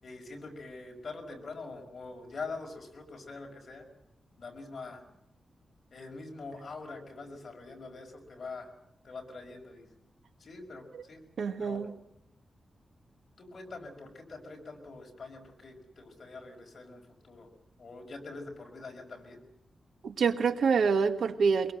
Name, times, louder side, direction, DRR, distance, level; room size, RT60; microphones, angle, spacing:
voice 1, 0.0-3.9 4.4-5.0 5.9-8.7 9.0-9.9 10.4-11.2 11.6-11.9 13.4-17.5 17.8-19.4, left 3 dB, 45° left, 2 dB, 5.5 m, -44 dB
voice 2, 11.4-11.9 20.0-21.7, right 5 dB, 90° right, 8 dB, 1.5 m, -26 dB
24.0 x 22.5 x 7.8 m, 0.81 s
wide cardioid pair, 150°, 0 cm